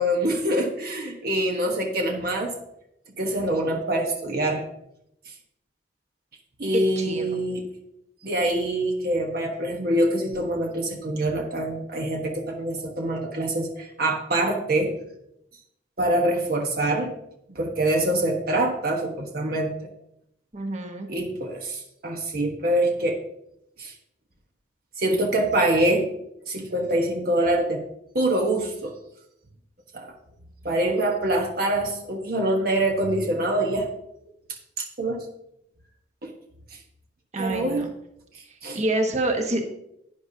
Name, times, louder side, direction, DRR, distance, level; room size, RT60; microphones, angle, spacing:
voice 1, 0.0-2.5 3.2-4.6 6.6-7.7 8.2-15.0 16.0-17.1 17.5-19.7 21.1-23.2 23.8-23.9 25.0-26.1 26.5-27.8 28.1-28.9 29.9-30.1 30.6-33.9 34.8-35.2 36.2-36.3 37.4-37.9 38.6-38.8, right 1 dB, 55° right, 1 dB, 1.2 m, -25 dB
voice 2, 7.0-7.3 20.5-21.1 37.3-37.9 38.7-39.6, right 2 dB, 40° right, 3 dB, 1.3 m, -26 dB
11.5 x 9.8 x 2.8 m, 0.80 s
head